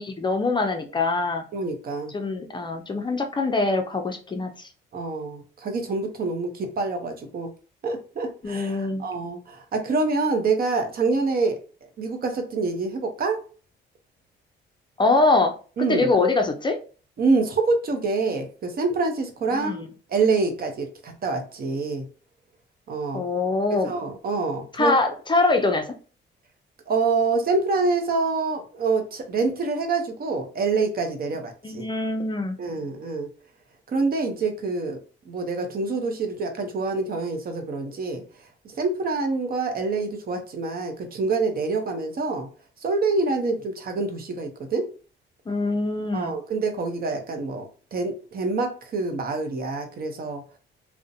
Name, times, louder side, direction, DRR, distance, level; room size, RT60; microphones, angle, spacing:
voice 1, 0.0-1.4 2.1-4.7 8.4-9.0 15.0-15.5 15.9-16.8 19.5-19.9 23.1-23.9 24.7-25.9 31.6-32.6 45.5-46.4, left 3 dB, 25° left, 4 dB, 0.4 m, -23 dB
voice 2, 1.5-2.1 4.9-7.5 7.8-11.6 12.0-13.4 15.8-16.1 17.2-19.8 20.1-22.1 22.9-23.2 23.7-25.1 26.9-31.8 32.6-33.3 33.9-35.0 35.3-38.2 38.8-42.5 42.8-44.9 46.1-50.4, right 3 dB, 50° right, 5 dB, 0.7 m, -26 dB
2.5 x 2.1 x 2.6 m, 0.37 s
cardioid pair, 90°, 20 cm